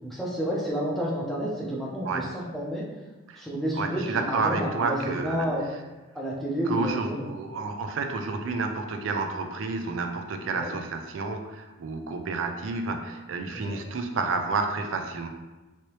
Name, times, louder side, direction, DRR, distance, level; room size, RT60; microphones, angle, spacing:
voice 1, 0.0-2.8 3.4-5.7 6.1-7.3 10.5-10.7 13.5-13.8, equal, ahead, -5 dB, 0.6 m, -30 dB
voice 2, 3.8-5.5 6.7-15.3, right 3 dB, 70° right, 5 dB, 0.4 m, -30 dB
3.1 x 2.8 x 3.0 m, 1.1 s
head